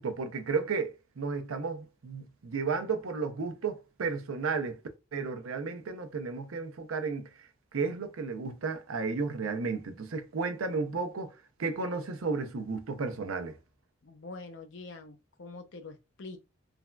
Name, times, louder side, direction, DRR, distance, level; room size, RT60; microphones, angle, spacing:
voice 1, 0.0-4.8 5.1-11.3 11.6-13.6, right 4 dB, 85° right, 0.5 m, -33 dB
voice 2, 14.0-16.4, left 3 dB, 60° left, 0.6 m, -45 dB
3.4 x 2.2 x 2.2 m
head